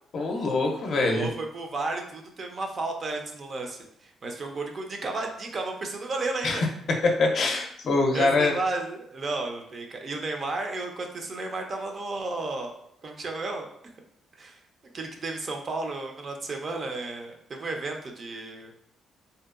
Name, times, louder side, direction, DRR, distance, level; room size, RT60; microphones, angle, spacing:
voice 1, 0.1-1.3 6.4-6.7 7.0-8.5, left 3 dB, 60° left, 2 dB, 0.5 m, -24 dB
voice 2, 0.9-6.6 8.1-12.7 13.0-13.7 14.4-14.6 14.9-18.7, right 3 dB, 45° right, 3 dB, 0.4 m, -33 dB
2.7 x 2.1 x 2.3 m, 0.72 s
cardioid pair, 90°, 0 cm